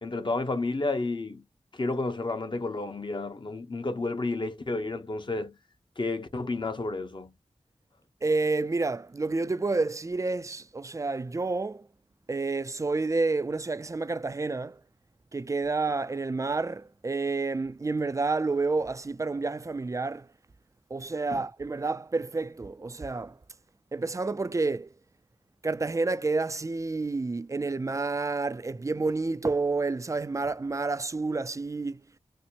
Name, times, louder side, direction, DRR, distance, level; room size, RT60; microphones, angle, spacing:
voice 1, 0.0-1.4 1.7-5.5 6.0-7.3 21.3-21.4, left 3 dB, 45° left, 0.9 m, -31 dB
voice 2, 8.2-11.9 12.3-14.8 15.3-20.3 20.9-23.4 23.9-24.9 25.6-32.0, right 3 dB, 25° right, 0.3 m, -29 dB
4.2 x 2.0 x 2.9 m
wide cardioid pair, 60°, 12 cm